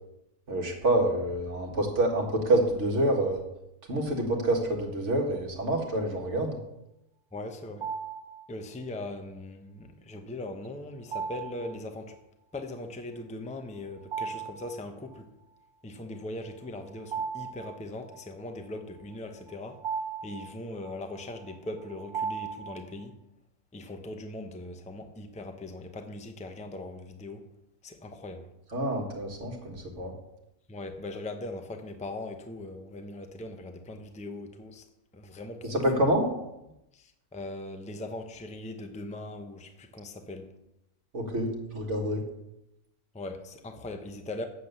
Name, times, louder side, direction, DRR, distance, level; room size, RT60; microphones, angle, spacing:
voice 1, 0.5-3.4 3.9-6.5 28.7-30.1 35.6-36.3 41.1-42.2, right 1 dB, 50° right, 2.1 m, -27 dB
voice 2, 7.3-7.9 8.5-12.2 12.5-15.3 15.8-19.8 20.2-23.1 23.7-27.4 27.8-28.5 30.7-34.8 35.1-36.1 36.9-40.5 43.1-44.5, left 2 dB, 5° left, 0.6 m, -40 dB
sound 1, 7.8-8.4 11.1-11.8 14.0-14.8 15.1-15.2 16.6-18.2 19.1-23.1, right 6 dB, 85° right, 1.9 m, -37 dB
8.4 x 7.7 x 6.8 m
omnidirectional pair, 1.6 m